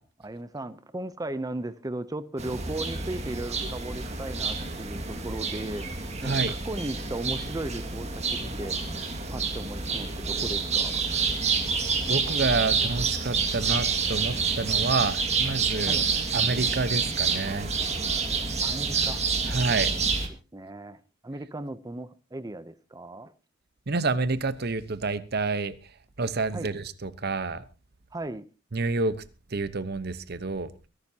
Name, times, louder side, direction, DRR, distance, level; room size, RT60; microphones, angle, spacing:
voice 1, 0.2-5.8 6.2-8.1 8.6-8.8 9.3-11.2 15.9-16.1 18.6-19.2 20.1-23.3 26.5-26.7 28.1-28.5, right 2 dB, 20° right, 0.6 m, -36 dB
sound 1, 2.4-20.3, right 5 dB, 35° right, 2.0 m, -28 dB
voice 2, 6.2-6.5 12.1-16.0 16.3-17.7 19.5-19.9 23.9-25.8 26.2-27.6 28.7-29.2 29.5-30.7, right 3 dB, 55° right, 1.0 m, -28 dB
23.0 x 11.5 x 2.8 m
head